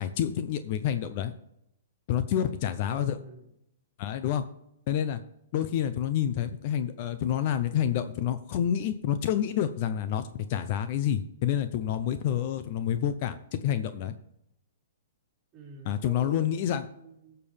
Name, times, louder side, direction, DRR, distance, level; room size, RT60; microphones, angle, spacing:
voice 1, 0.0-1.3 2.1-3.2 4.0-4.4 4.9-5.2 5.5-14.1 15.9-16.8, left 10 dB, 40° left, 11 dB, 0.6 m, -28 dB
voice 2, 2.8-3.5 15.5-17.4, right 4 dB, 20° right, -4 dB, 3.7 m, -48 dB
16.5 x 6.8 x 3.5 m, 0.80 s
hypercardioid pair, 155°, 0 cm